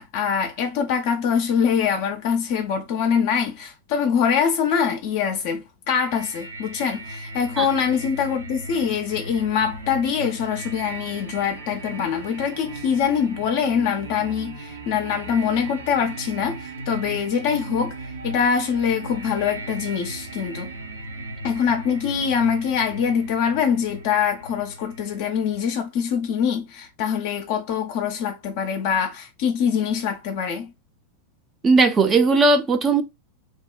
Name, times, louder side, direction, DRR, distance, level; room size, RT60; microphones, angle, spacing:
voice 1, 0.0-17.9 18.2-20.7 21.4-30.7, left 7 dB, 50° left, 0.4 m, -24 dB
sound 1, 5.9-25.6, right 2 dB, 70° right, 0.6 m, -37 dB
voice 2, 31.6-33.0, right 3 dB, 20° right, 0.5 m, -17 dB
2.6 x 2.0 x 2.4 m
figure-of-eight pair, 90°, 0 cm